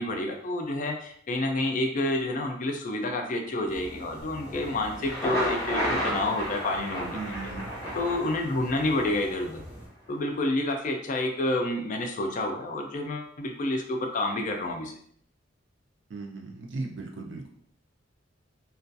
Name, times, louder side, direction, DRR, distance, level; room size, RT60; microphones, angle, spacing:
voice 1, 0.0-7.2 7.9-9.6 10.1-14.9, left 2 dB, 45° left, 3 dB, 0.4 m, -29 dB
sound 1, 3.7-9.9, equal, 15° right, 1.0 m, -44 dB
Thunder, 4.9-8.9, equal, 20° left, 0.7 m, -31 dB
voice 2, 7.1-7.8 16.1-17.5, right 3 dB, 70° right, 2 dB, 0.5 m, -37 dB
2.3 x 2.3 x 2.6 m, 0.63 s
head